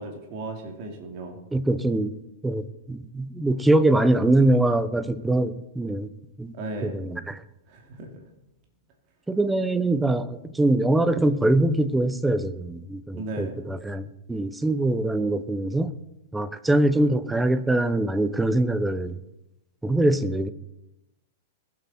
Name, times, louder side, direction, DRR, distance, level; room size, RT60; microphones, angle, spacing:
voice 1, 0.0-1.4 6.5-7.0 7.7-8.1 13.1-13.6, right 2 dB, 45° right, 2.9 m, -35 dB
voice 2, 1.5-2.2 2.4-6.1 6.4-6.5 6.8-7.4 9.3-15.9 16.3-19.2 19.8-20.5, right 1 dB, 5° right, 0.9 m, -23 dB
21.5 x 8.2 x 4.4 m
figure-of-eight pair, 100°, 0 cm